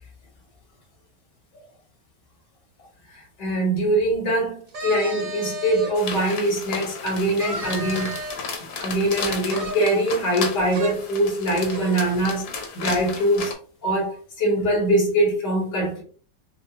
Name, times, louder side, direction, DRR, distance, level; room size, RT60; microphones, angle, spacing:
voice 1, 3.1-8.2 8.8-12.5 12.7-13.5 13.8-16.0, right 1 dB, 90° left, -1 dB, 2.2 m, -23 dB
sound 1, 4.7-5.9 6.5-6.6 7.4-8.6 9.5-10.5 10.7-10.9 11.3-11.4 11.7-12.1, right 2 dB, 45° right, 1.3 m, -33 dB
sound 2, 5.9-13.5, left 5 dB, 70° left, 1.4 m, -34 dB
5.5 x 2.0 x 2.9 m, 0.43 s
omnidirectional pair, 1.8 m